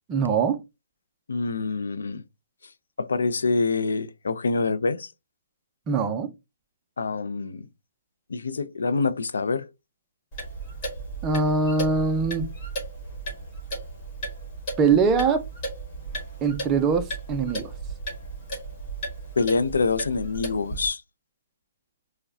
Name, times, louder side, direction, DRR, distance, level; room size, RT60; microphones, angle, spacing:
voice 1, 0.1-0.6 5.9-6.3 11.2-12.5 14.8-15.4 16.4-17.7, right 5 dB, 15° right, 0.5 m, -22 dB
voice 2, 1.3-2.2 3.0-5.1 7.0-7.7 8.3-9.7 19.4-21.0, left 4 dB, 85° left, 0.5 m, -26 dB
Clock, 10.3-20.9, right 2 dB, 25° left, 1.4 m, -35 dB
4.7 x 2.1 x 2.6 m
hypercardioid pair, 165°, 0 cm